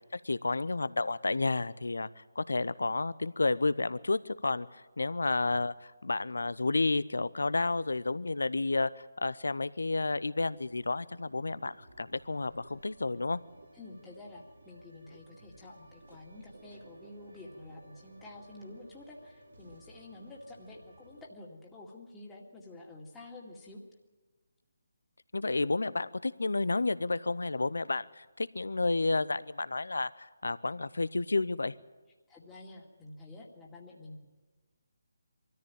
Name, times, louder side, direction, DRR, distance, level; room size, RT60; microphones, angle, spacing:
voice 1, 0.1-13.4 25.3-31.7, left 3 dB, 70° left, 17 dB, 0.7 m, -31 dB
sound 1, 10.5-21.3, right 2 dB, 70° right, 2.7 m, -57 dB
voice 2, 13.7-23.8 32.3-34.3, left 2 dB, 10° left, -3 dB, 2.2 m, -49 dB
23.0 x 14.0 x 9.0 m, 1.3 s
figure-of-eight pair, 150°, 0 cm